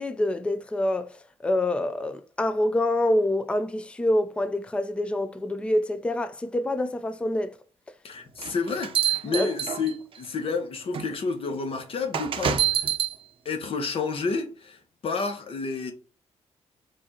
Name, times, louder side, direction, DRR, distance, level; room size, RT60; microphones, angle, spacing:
voice 1, 0.0-7.6 9.3-9.5, left 1 dB, 10° left, 0.4 m, -26 dB
voice 2, 8.0-12.9 13.4-14.8 15.0-15.9, left 4 dB, 50° left, 1.0 m, -30 dB
sound 1, 8.4-10.2 10.9-11.1 12.1-13.1, right 9 dB, 50° right, 0.6 m, -26 dB
4.8 x 2.5 x 4.2 m
wide cardioid pair, 145°, 12 cm